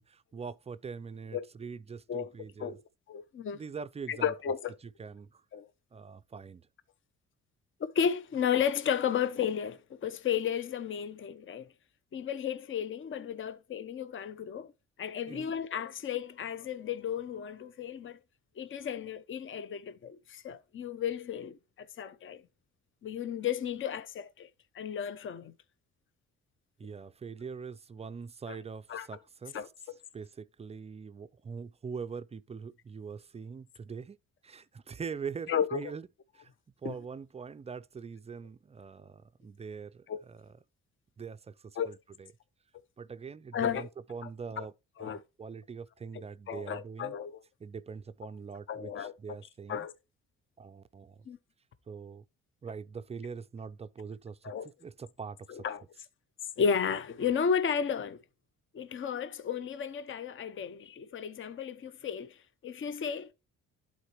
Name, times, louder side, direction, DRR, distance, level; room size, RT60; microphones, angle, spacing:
voice 1, 0.0-2.8 3.5-4.3 5.0-5.4 5.9-6.7 15.3-15.5 26.8-29.6 30.1-34.2 34.4-36.1 36.3-36.5 36.8-40.5 41.2-42.3 43.0-44.7 45.0-47.2 47.6-49.9 50.6-51.2 51.9-52.2 52.6-54.5 54.8-55.6, right 5 dB, 20° right, 0.3 m, -43 dB
voice 2, 3.1-3.6 4.1-4.8 5.5-5.7 7.8-11.7 12.1-14.7 15.0-18.2 18.6-22.4 23.0-24.5 24.7-25.5 28.5-28.6 28.9-29.1 29.5-29.7 35.5-35.8 36.8-36.9 40.1-40.2 41.8-41.9 43.5-43.9 44.2-44.3 44.6-44.7 45.0-45.2 46.5-47.4 48.7-49.1 49.7-49.9 51.3-51.4 54.4-54.7 55.5-55.8 56.6-58.2 58.7-63.3, left 7 dB, 40° left, 0.7 m, -33 dB
11.5 x 4.1 x 3.0 m
cardioid pair, 90°, 30 cm